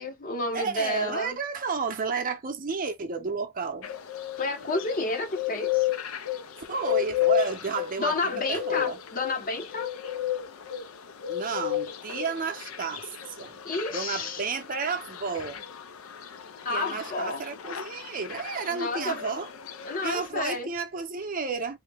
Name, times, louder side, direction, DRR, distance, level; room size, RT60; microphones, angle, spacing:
voice 1, 0.0-1.4 4.4-5.9 8.0-9.9 13.6-14.4 16.6-17.4 18.7-19.2 19.9-20.7, left 2 dB, 40° left, 0.8 m, -30 dB
voice 2, 0.5-3.9 6.7-9.0 11.3-13.6 13.9-15.7 16.7-19.5 20.0-21.8, right 5 dB, 40° right, 0.6 m, -32 dB
sound 1, 3.8-20.3, left 13 dB, 85° left, 0.5 m, -33 dB
3.1 x 2.1 x 3.4 m
head